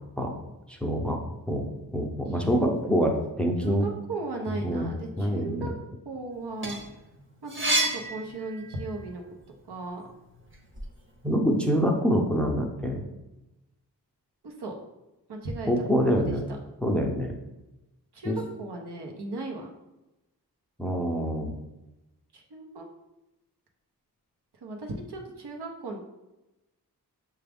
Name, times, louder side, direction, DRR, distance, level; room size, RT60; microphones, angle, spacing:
voice 1, 0.8-1.2 1.5-1.6 1.9-3.9 4.6-4.9 5.2-5.7 11.2-13.0 15.7-16.5 16.8-17.3 18.2-18.4 20.8-21.5, equal, 5° left, 2 dB, 0.6 m, -25 dB
voice 2, 3.6-5.7 6.0-6.8 7.4-9.2 9.7-10.1 14.4-14.7 15.3-16.2 18.1-19.7 22.3-22.9 24.6-26.0, right 2 dB, 75° right, 1 dB, 0.8 m, -36 dB
sound 1, 6.3-9.0 9.5-10.9, right 2 dB, 30° right, 0.9 m, -30 dB
5.9 x 2.3 x 3.4 m, 0.98 s
wide cardioid pair, 60°, 40 cm